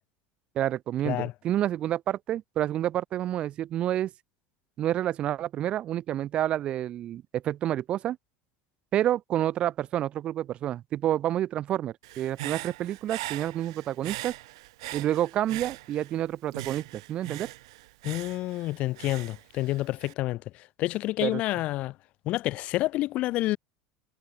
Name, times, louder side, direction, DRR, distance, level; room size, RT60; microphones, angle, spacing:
voice 1, 0.5-4.1 4.8-8.2 8.9-14.3 14.9-17.5 21.2-21.4, right 12 dB, 40° right, 1.1 m, -29 dB
Human voice / Breathing, 12.0-16.2 16.5-20.1, right 19 dB, 85° right, 1.2 m, -40 dB
voice 2, 18.0-21.9 22.3-23.6, left 17 dB, 50° left, 0.9 m, -29 dB
supercardioid pair, 125°, 3 cm